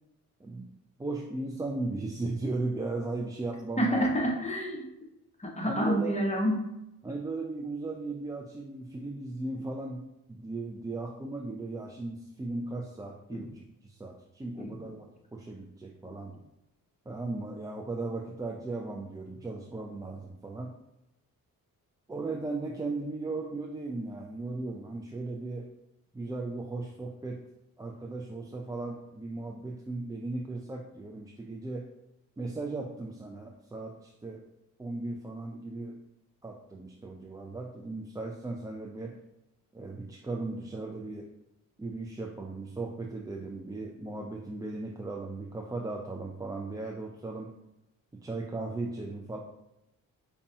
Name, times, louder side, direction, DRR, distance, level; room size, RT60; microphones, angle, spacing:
voice 1, 1.0-4.1 5.6-6.2 7.0-16.4 17.1-20.7 22.1-25.7 26.1-27.4 27.8-31.9 32.4-34.5 34.8-36.0 36.4-39.2 39.7-41.3 41.8-47.6 48.1-49.4, right 2 dB, 10° right, 1 dB, 0.3 m, -37 dB
voice 2, 3.8-4.9 5.4-6.6 13.3-13.4 14.6-14.7 16.1-16.2, equal, 20° left, 0 dB, 1.1 m, -28 dB
5.2 x 2.3 x 2.7 m, 0.88 s
cardioid pair, 60°, 36 cm